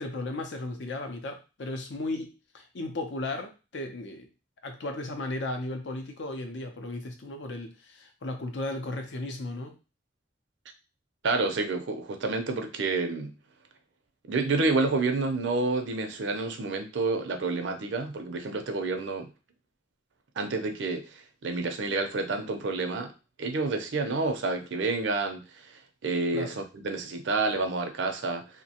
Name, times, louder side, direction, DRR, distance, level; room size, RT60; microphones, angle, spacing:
voice 1, 0.0-4.3 4.6-9.7 26.3-26.5, left 2 dB, 80° left, 5 dB, 0.6 m, -35 dB
voice 2, 11.2-13.3 14.3-19.3 20.4-23.1 23.4-28.5, right 3 dB, 85° right, 6 dB, 0.5 m, -29 dB
2.7 x 2.1 x 2.8 m, 0.30 s
head